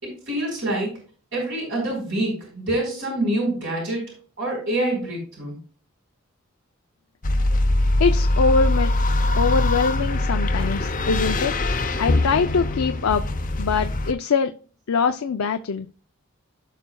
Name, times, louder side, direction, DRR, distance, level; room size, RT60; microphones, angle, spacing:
voice 1, 0.0-0.9 1.3-4.0 4.4-5.6, right 1 dB, 55° right, -2 dB, 4.2 m, -26 dB
sound 1, 7.2-14.1, left 2 dB, 40° left, 0.7 m, -22 dB
voice 2, 8.0-8.9 9.4-11.6 12.0-13.2 13.6-14.5 14.9-15.9, left 5 dB, 75° left, 7 dB, 0.5 m, -23 dB
16.0 x 5.9 x 2.3 m, 0.40 s
head